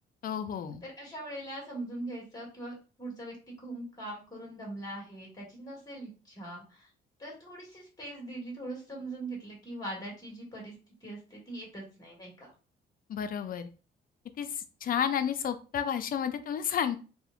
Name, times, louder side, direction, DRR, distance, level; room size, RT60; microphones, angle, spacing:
voice 1, 0.2-0.8 13.1-13.7 14.4-17.0, left 8 dB, 45° left, 10 dB, 0.4 m, -31 dB
voice 2, 0.8-6.9 7.2-10.7 11.0-12.5, right 1 dB, 20° left, -2 dB, 1.5 m, -41 dB
2.7 x 2.1 x 2.4 m, 0.35 s
cardioid pair, 90°, 20 cm